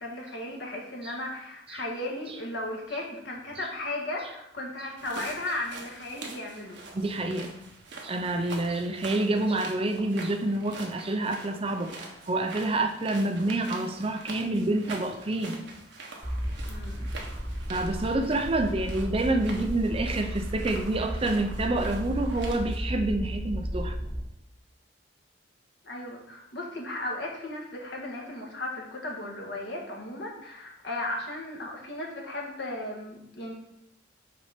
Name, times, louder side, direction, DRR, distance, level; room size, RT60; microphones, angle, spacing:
voice 1, 0.0-6.8 16.7-17.1 25.8-33.5, left 1 dB, 65° left, -1 dB, 1.7 m, -35 dB
sound 1, 5.0-22.8, right 3 dB, 65° right, 1.3 m, -45 dB
voice 2, 6.9-7.5 8.0-11.9 12.3-15.6 17.7-24.0, right 2 dB, 30° right, 6 dB, 0.5 m, -28 dB
sound 2, 16.2-24.2, equal, 30° left, 1.8 m, -34 dB
6.0 x 4.3 x 5.9 m, 0.82 s
head